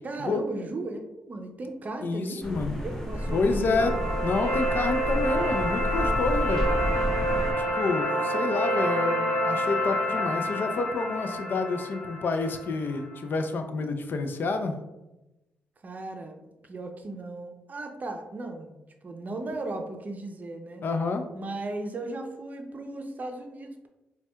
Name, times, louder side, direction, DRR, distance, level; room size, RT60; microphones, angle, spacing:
voice 1, 0.0-3.9 15.8-16.4 16.7-18.8 19.0-20.8 21.3-23.9, right 2 dB, 40° right, 4 dB, 0.5 m, -36 dB
voice 2, 2.0-2.7 3.3-3.9 4.2-6.6 7.6-14.8 20.8-21.3, left 3 dB, 55° left, 7 dB, 0.4 m, -29 dB
sound 1, 2.4-7.5, equal, 10° left, 0.7 m, -31 dB
sound 2, 3.1-13.2, equal, 85° left, 0.9 m, -28 dB
4.2 x 2.2 x 2.2 m, 0.97 s
supercardioid pair, 60°, 4 cm